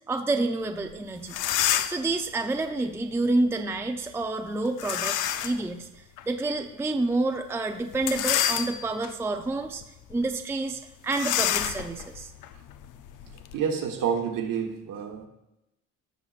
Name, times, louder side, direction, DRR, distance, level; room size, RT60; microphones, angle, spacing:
voice 1, 0.1-1.4 1.9-9.8 10.1-12.3, right 2 dB, 5° right, 5 dB, 0.5 m, -28 dB
sound 1, 0.9-1.0 1.2-2.1 4.8-5.6 6.2-6.3 7.9-9.1 9.6-9.8 10.1-10.2 11.1-13.6, left 11 dB, 60° left, 0.6 m, -28 dB
voice 2, 13.5-15.3, right 7 dB, 60° right, 4 dB, 1.3 m, -28 dB
16.0 x 5.6 x 2.4 m, 0.91 s
cardioid pair, 110°, 36 cm